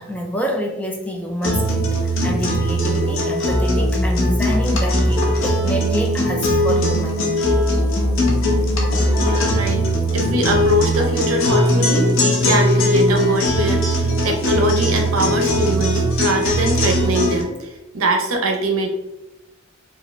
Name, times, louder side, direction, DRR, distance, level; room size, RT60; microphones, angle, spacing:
voice 1, 0.0-7.2, equal, 5° left, 1 dB, 0.5 m, -27 dB
sound 1, 1.4-17.4, equal, 65° left, 0.9 m, -19 dB
voice 2, 9.2-9.9 10.1-18.9, right 1 dB, 75° right, 3 dB, 0.8 m, -22 dB
4.8 x 2.7 x 3.2 m, 0.99 s
head